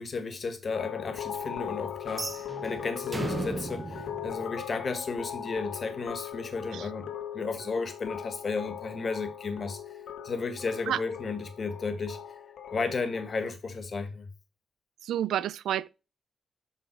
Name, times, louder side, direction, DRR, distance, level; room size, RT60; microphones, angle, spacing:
voice 1, 0.0-10.0 10.2-12.4 12.7-14.3, left 4 dB, 45° left, 1.7 m, -34 dB
sound 1, 0.7-13.4, left 9 dB, 75° left, 1.6 m, -39 dB
sound 2, 2.1-5.2, right 3 dB, 25° right, 0.6 m, -37 dB
voice 2, 15.0-15.9, right 11 dB, 90° right, 0.4 m, -29 dB
12.0 x 4.0 x 4.6 m
cardioid pair, 105°, 0 cm